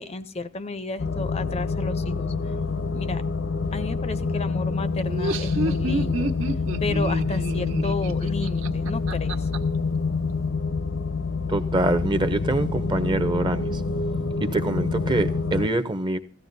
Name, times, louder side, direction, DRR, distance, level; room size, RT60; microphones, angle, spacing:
voice 1, 0.0-2.5 2.9-3.2 3.7-6.3 6.8-9.4, left 3 dB, 30° left, 0.5 m, -32 dB
sound 1, 1.0-15.7, left 4 dB, 70° left, 0.8 m, -27 dB
Laughter, 5.0-9.6, right 1 dB, 80° right, 1.3 m, -29 dB
voice 2, 11.5-13.7 14.4-16.2, right 2 dB, 25° right, 0.6 m, -24 dB
17.0 x 15.0 x 2.6 m
head